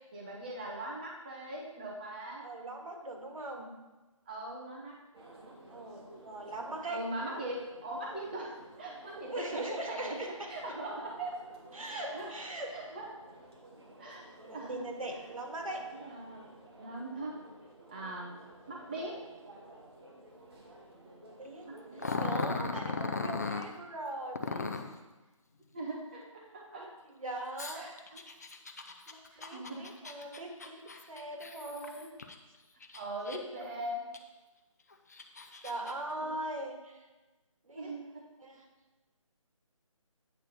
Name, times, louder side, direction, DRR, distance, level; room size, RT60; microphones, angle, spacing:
voice 1, 0.1-2.4 4.3-5.0 6.8-11.4 11.9-12.3 12.7-13.1 14.0-14.3 14.5-14.9 16.0-16.4 16.8-17.4 17.9-18.3 18.7-19.2 21.7-22.5 25.7-26.9 27.7-28.2 29.3-29.9 31.8-32.0 32.9-34.1 36.2-36.3 37.7-38.2, right 1 dB, 15° right, -2 dB, 0.7 m, -41 dB
voice 2, 2.4-3.7 5.7-7.0 9.2-10.8 11.7-12.8 14.4-15.9 21.4-21.7 22.1-24.7 26.8-26.9 27.2-27.9 29.1-32.1 35.6-37.0 37.7-37.9 38.4-38.7, right 2 dB, 80° right, 2 dB, 1.8 m, -40 dB
sound 1, 5.1-23.5, right 1 dB, 45° right, 1.8 m, -54 dB
Growling, 22.0-23.7 24.4-25.0 27.6-32.4 32.8-33.6 34.1-34.2 34.9-35.9, left 4 dB, 30° left, 0.5 m, -37 dB
8.7 x 4.1 x 6.5 m, 1.2 s
figure-of-eight pair, 170°, 17 cm